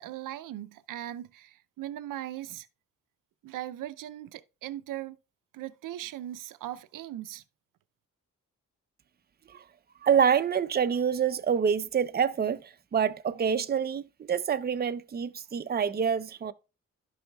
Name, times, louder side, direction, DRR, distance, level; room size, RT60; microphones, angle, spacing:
voice 1, 0.0-2.7 3.4-5.2 5.5-7.4, right 13 dB, 85° right, 0.5 m, -39 dB
voice 2, 10.0-16.5, right 7 dB, 30° right, 0.5 m, -27 dB
12.0 x 5.5 x 2.2 m
cardioid pair, 65°, 32 cm